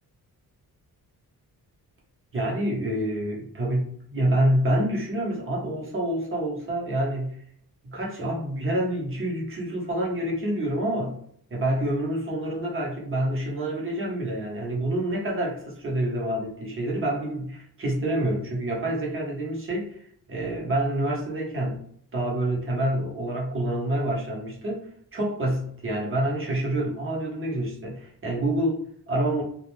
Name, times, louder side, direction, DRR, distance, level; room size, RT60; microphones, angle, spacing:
voice 1, 2.3-7.4 7.8-11.2 11.5-21.8 22.1-29.4, right 1 dB, 30° right, -3 dB, 0.9 m, -27 dB
2.3 x 2.1 x 3.1 m, 0.63 s
wide cardioid pair, 145°, 39 cm